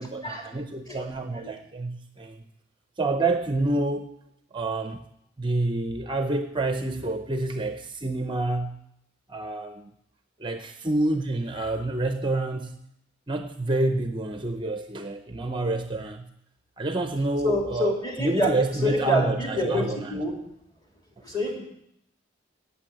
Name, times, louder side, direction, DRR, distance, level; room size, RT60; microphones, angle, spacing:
voice 1, 0.0-2.4 3.0-4.1 4.5-5.0 5.4-8.8 9.3-9.9 10.4-12.8 13.3-16.3 16.8-20.2, right 2 dB, 25° right, 7 dB, 0.6 m, -28 dB
voice 2, 17.4-18.5 18.8-19.8 20.1-20.3 21.2-21.6, left 1 dB, 20° left, -1 dB, 3.4 m, -26 dB
17.0 x 7.0 x 7.8 m, 0.78 s
head